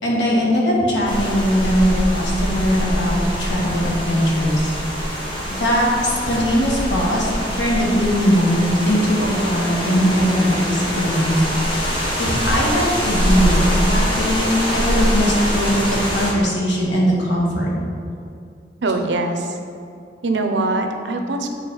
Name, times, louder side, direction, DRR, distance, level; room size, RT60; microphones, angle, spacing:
voice 1, 0.0-4.7 5.5-11.3 11.6-17.7, equal, 85° left, -4 dB, 1.6 m, -20 dB
sound 1, 1.0-16.3, equal, 30° left, 1.2 m, -23 dB
voice 2, 18.8-19.5 20.2-21.5, right 2 dB, 85° right, 5 dB, 0.7 m, -22 dB
8.1 x 4.1 x 4.6 m, 2.4 s
head